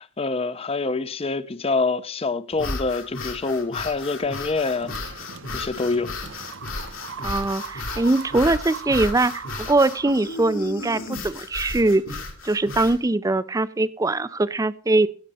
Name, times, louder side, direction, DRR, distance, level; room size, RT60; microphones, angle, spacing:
voice 1, 0.0-6.2, left 3 dB, 30° left, 0.6 m, -26 dB
sound 1, 2.5-13.0, left 3 dB, 85° left, 3.0 m, -34 dB
sound 2, 4.8-10.8, right 6 dB, 65° right, 0.6 m, -40 dB
voice 2, 7.2-12.0 12.4-15.1, right 2 dB, 15° right, 0.4 m, -22 dB
16.5 x 6.5 x 4.1 m
head